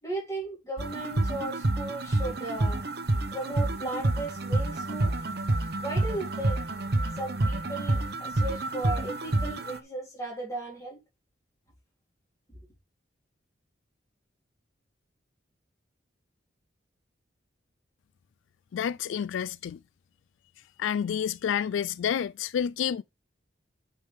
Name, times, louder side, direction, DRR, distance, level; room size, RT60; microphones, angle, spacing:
voice 1, 0.0-2.8 3.3-5.1 5.8-6.6 7.2-11.0, right 2 dB, 15° left, 3.9 m, -36 dB
sound 1, 0.8-9.8, right 2 dB, 55° right, 0.9 m, -28 dB
voice 2, 18.7-19.8 20.8-23.0, left 8 dB, 80° left, 0.3 m, -29 dB
8.7 x 4.8 x 3.7 m
head